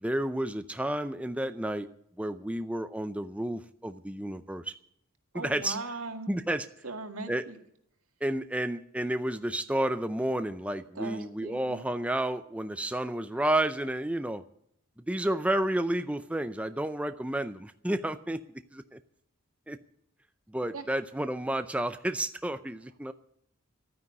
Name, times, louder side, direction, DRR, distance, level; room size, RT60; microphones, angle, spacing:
voice 1, 0.0-1.9 2.2-4.7 5.3-5.8 6.3-6.7 7.3-7.4 8.2-14.4 15.1-18.4 18.7-19.0 19.7-19.8 20.5-23.1, right 1 dB, 5° right, 10 dB, 0.5 m, -31 dB
voice 2, 5.3-6.3 6.8-7.5 11.0-11.8 20.7-20.8, right 3 dB, 85° right, 5 dB, 2.0 m, -39 dB
12.5 x 9.5 x 9.4 m, 0.71 s
head